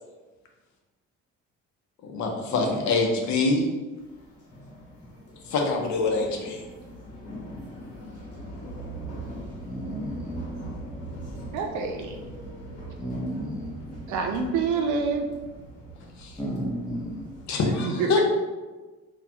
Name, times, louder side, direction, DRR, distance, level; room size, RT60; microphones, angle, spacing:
voice 1, 2.0-3.7 5.5-6.7 16.2-16.4 17.5-18.2, left 3 dB, 70° left, 1 dB, 0.7 m, -25 dB
sound 1, 4.0-17.7, right 1 dB, 55° left, 1.2 m, -41 dB
voice 2, 9.6-10.4 13.0-13.8 16.4-17.3, equal, 10° left, -1 dB, 0.8 m, -33 dB
voice 3, 11.5-12.2 14.1-15.3 17.8-18.2, right 5 dB, 75° right, 3 dB, 0.6 m, -27 dB
3.9 x 2.4 x 2.8 m, 1.2 s
cardioid pair, 90°, 30 cm